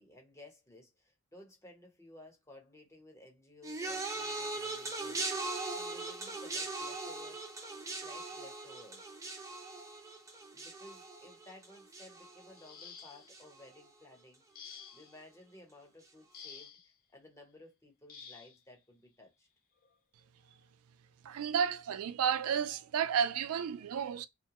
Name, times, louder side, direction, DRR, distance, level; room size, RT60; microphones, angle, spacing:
voice 1, 0.0-7.4 8.0-9.1 10.5-19.5, left 1 dB, 15° left, 0.9 m, -56 dB
sound 1, 3.6-13.0 13.3-13.8 14.7-14.8, right 2 dB, 15° right, 0.5 m, -40 dB
sound 2, 12.5-13.4 14.5-15.2 16.3-16.9 18.1-18.6 19.8-19.9 20.4-20.6, left 7 dB, 40° left, 0.5 m, -51 dB
voice 2, 21.2-24.3, right 8 dB, 90° right, 0.4 m, -32 dB
2.7 x 2.2 x 2.9 m
head